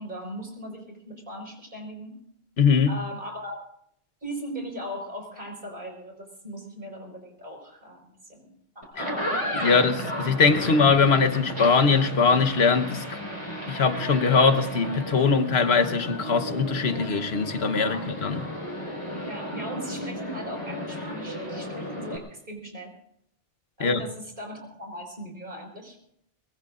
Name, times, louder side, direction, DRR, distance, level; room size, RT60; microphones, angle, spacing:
voice 1, 0.0-2.1 2.9-3.6 4.2-9.1 17.8-18.0 19.2-22.9 23.8-26.0, equal, 55° right, 5.0 m, -39 dB
voice 2, 2.6-2.9 9.0-9.1 9.6-13.2 13.7-18.4 23.8-24.0, left 5 dB, 90° left, 1.3 m, -21 dB
sound 1, 8.8-22.2, equal, 30° left, 4.4 m, -34 dB
23.5 x 21.0 x 2.5 m
omnidirectional pair, 1.0 m